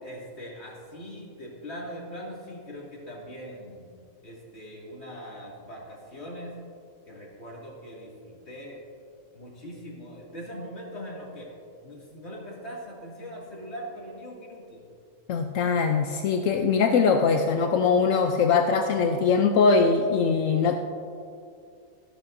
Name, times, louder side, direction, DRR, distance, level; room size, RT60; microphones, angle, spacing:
voice 1, 0.0-3.9 4.2-6.5 7.1-8.8 9.3-11.5 11.8-14.9, equal, 55° left, -4 dB, 2.7 m, -41 dB
voice 2, 15.3-20.8, left 5 dB, 75° left, 4 dB, 1.0 m, -22 dB
14.5 x 11.5 x 2.6 m, 2.4 s
omnidirectional pair, 1.4 m